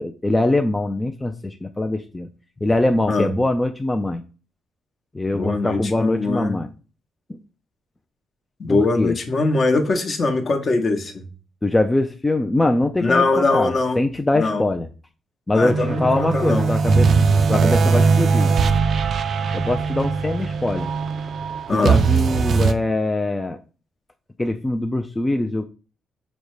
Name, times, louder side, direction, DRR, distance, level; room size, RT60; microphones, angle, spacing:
voice 1, 0.0-2.3 2.6-4.2 5.1-6.7 8.7-9.1 11.6-14.9 15.5-17.1 17.5-18.5 19.5-20.9 21.7-23.6 24.4-25.6, left 2 dB, 15° left, 5 dB, 0.4 m, -22 dB
voice 2, 5.3-6.6 8.6-11.2 13.0-14.0 14.3-14.6 15.5-16.7 21.7-22.0, left 3 dB, 45° left, 5 dB, 0.9 m, -21 dB
sound 1, 15.6-22.7, right 4 dB, 55° right, 0.4 m, -20 dB
5.2 x 2.1 x 4.7 m, 0.36 s
cardioid pair, 90°, 0 cm